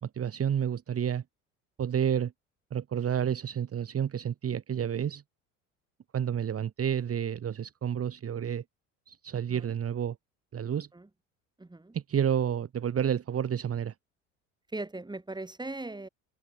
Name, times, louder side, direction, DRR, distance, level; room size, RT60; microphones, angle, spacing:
voice 1, 0.0-1.2 1.8-2.3 2.7-5.2 6.1-8.6 9.1-10.2 10.5-10.9 11.9-13.9, right 9 dB, 35° right, 2.3 m, -30 dB
voice 2, 9.3-9.7 10.9-11.1 11.6-11.9 14.7-16.1, right 2 dB, 10° right, 4.4 m, -39 dB
figure-of-eight pair, 60°, 40 cm